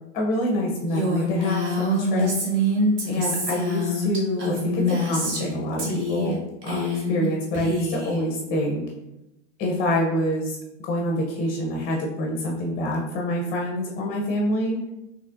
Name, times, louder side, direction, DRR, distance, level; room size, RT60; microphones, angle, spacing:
voice 1, 0.1-2.3 3.1-8.8 9.6-10.6 10.8-14.8, left 1 dB, 25° left, -1 dB, 0.6 m, -26 dB
Female speech woman speaking, 0.9-5.5 5.8-6.3 6.6-7.3 7.5-8.2, equal, 35° right, 1.1 m, -25 dB
4.2 x 2.9 x 2.5 m, 0.92 s
hypercardioid pair, 110°, 37 cm